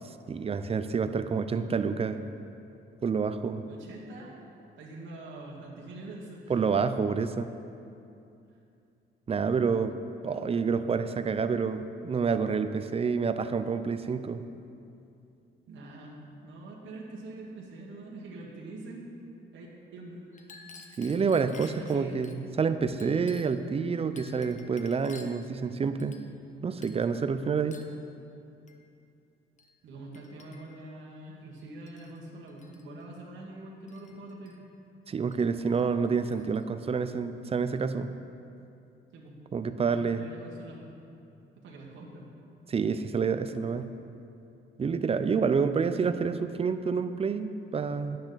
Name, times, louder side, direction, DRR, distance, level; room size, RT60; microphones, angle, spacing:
voice 1, 0.3-2.2 3.0-3.6 6.5-7.5 9.3-9.9 10.2-14.4 21.0-26.2 26.6-27.8 35.1-38.1 39.5-40.2 42.7-43.9 44.8-48.2, right 5 dB, 30° right, 10 dB, 0.5 m, -28 dB
voice 2, 3.7-4.4 4.8-6.6 15.7-19.3 19.5-19.7 19.9-20.6 21.8-22.2 29.8-34.5 39.1-39.4 39.8-40.9 41.6-42.3, right 2 dB, 75° right, -3 dB, 1.5 m, -44 dB
Chink clink, 20.3-22.4 23.0-23.7 24.2-25.5 26.0-26.5 26.8-27.1 27.7-28.0 28.7-28.8 29.6-29.7 30.1-30.8 31.6-32.2 32.5-32.8 33.9-34.6 35.3-35.5 35.7-36.6, left 4 dB, 40° left, 0.8 m, -52 dB
10.0 x 8.8 x 4.0 m, 2.6 s
cardioid pair, 90°, 20 cm